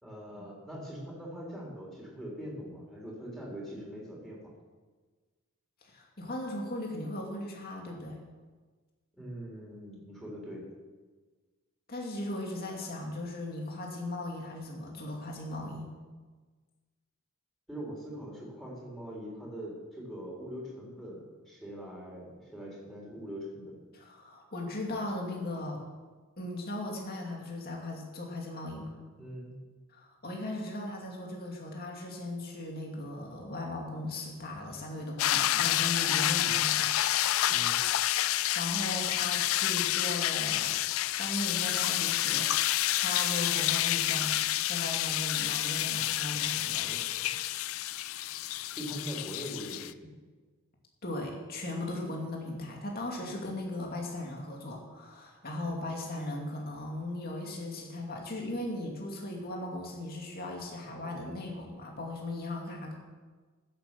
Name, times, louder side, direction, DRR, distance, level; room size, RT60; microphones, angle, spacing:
voice 1, 0.0-4.4 9.1-10.7 17.7-23.8 29.2-29.6 37.5-37.8 46.8-47.3 48.8-50.1 61.1-61.5, equal, ahead, -4 dB, 4.1 m, -42 dB
voice 2, 5.8-8.2 11.9-15.9 23.9-25.8 26.4-28.9 29.9-36.9 38.3-40.7 41.1-44.4 44.7-46.9 51.0-62.9, left 1 dB, 45° left, 0 dB, 2.3 m, -37 dB
sound 1, 35.2-49.9, left 14 dB, 65° left, 0.4 m, -29 dB
15.0 x 7.7 x 6.9 m, 1.4 s
head